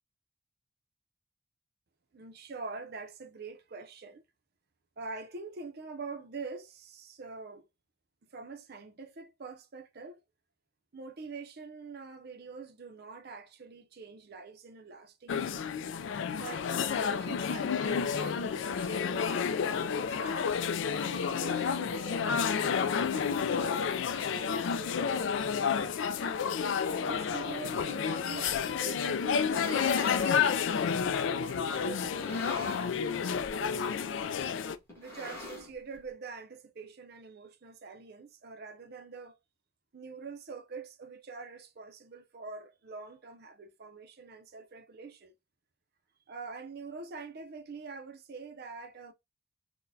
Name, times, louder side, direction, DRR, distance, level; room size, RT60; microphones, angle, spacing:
voice 1, 2.1-4.2 5.0-7.7 8.2-10.2 10.9-15.6 16.3-20.5 21.0-26.2 26.9-33.9 34.9-39.4 39.9-45.3 46.3-49.1, right 4 dB, 50° right, 0.5 m, -45 dB
sound 1, 15.3-34.8, left 6 dB, 60° left, 0.3 m, -30 dB
sound 2, 29.5-30.3 31.0-31.1 32.0-33.0 33.3-33.6 33.9-34.0 34.9-36.0, left 2 dB, 10° left, 1.2 m, -42 dB
3.9 x 2.2 x 2.7 m
head